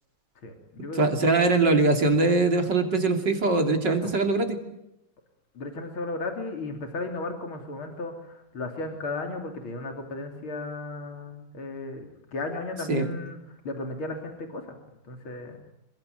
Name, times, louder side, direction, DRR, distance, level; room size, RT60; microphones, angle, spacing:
voice 1, 0.4-1.1 3.9-4.1 5.6-14.8 15.0-15.6, left 2 dB, 80° left, 4 dB, 3.8 m, -35 dB
voice 2, 1.0-4.6 12.9-13.1, right 3 dB, 55° right, 5 dB, 3.5 m, -22 dB
26.5 x 23.5 x 9.4 m, 0.83 s
omnidirectional pair, 2.3 m